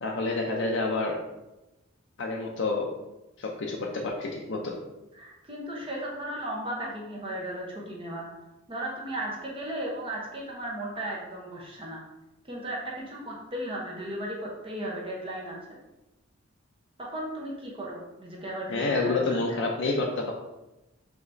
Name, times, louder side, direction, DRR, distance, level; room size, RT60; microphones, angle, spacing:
voice 1, 0.0-1.2 2.2-2.9 3.4-4.7 18.7-20.3, left 3 dB, 60° left, -1 dB, 0.5 m, -28 dB
voice 2, 5.1-8.2 8.7-12.0 12.5-15.6 17.0-19.6, right 1 dB, 25° right, -3 dB, 0.8 m, -35 dB
5.0 x 3.3 x 2.6 m, 0.99 s
head